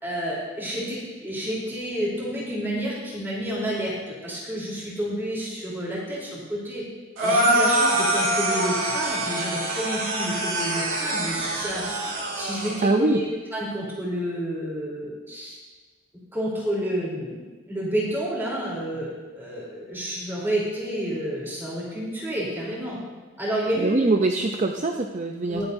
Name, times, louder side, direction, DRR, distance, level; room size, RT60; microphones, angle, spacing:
voice 1, 0.0-6.9 7.2-11.8 12.3-13.2 13.5-15.6 16.3-23.0 23.4-24.0 25.5-25.6, equal, 10° right, -6 dB, 3.5 m, -30 dB
sound 1, 7.2-12.8, right 1 dB, 80° right, 2.7 m, -24 dB
voice 2, 12.8-13.2 23.8-25.6, right 2 dB, 35° right, 4 dB, 0.5 m, -23 dB
22.0 x 8.1 x 2.7 m, 1.3 s
head